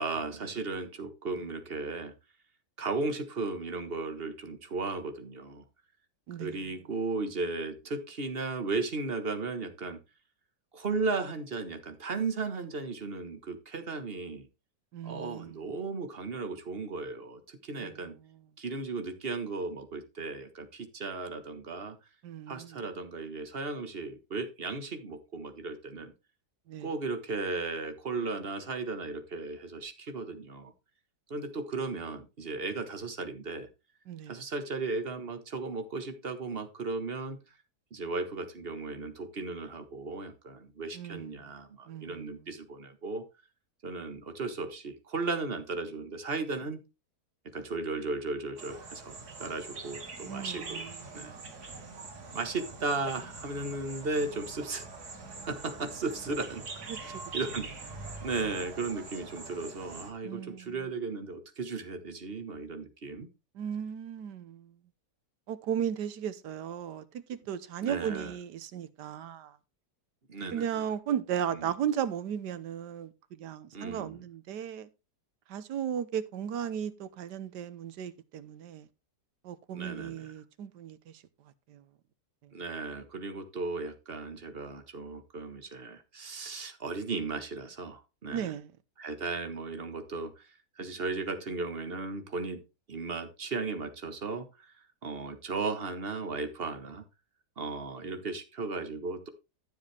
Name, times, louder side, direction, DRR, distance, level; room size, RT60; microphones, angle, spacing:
voice 1, 0.0-2.1 2.8-5.6 6.4-10.0 10.7-14.5 15.0-18.1 18.6-22.0 22.5-26.1 26.8-30.7 31.3-33.7 34.3-37.4 37.9-43.2 43.8-46.8 47.5-50.8 51.1-51.3 52.3-54.9 55.5-56.6 57.0-57.9 58.2-63.3 67.8-68.3 70.3-70.6 71.5-71.7 73.7-74.2 79.7-80.3 82.5-88.5 89.0-90.5 90.8-92.6 92.9-94.7 95.0-97.0 97.6-99.3, right 3 dB, 35° right, 1.5 m, -35 dB
voice 2, 6.3-6.7 14.9-15.6 17.8-18.1 22.2-22.8 26.7-26.9 34.1-34.4 40.9-41.5 41.9-42.4 50.2-51.4 56.9-57.2 60.2-60.8 63.5-64.7 65.5-69.6 70.5-74.9 75.5-78.9 79.4-81.2 81.7-81.8 88.3-88.7, right 9 dB, 85° right, 1.5 m, -36 dB
sound 1, 48.6-60.1, right 3 dB, 70° right, 2.6 m, -43 dB
12.5 x 7.4 x 3.3 m
omnidirectional pair, 1.8 m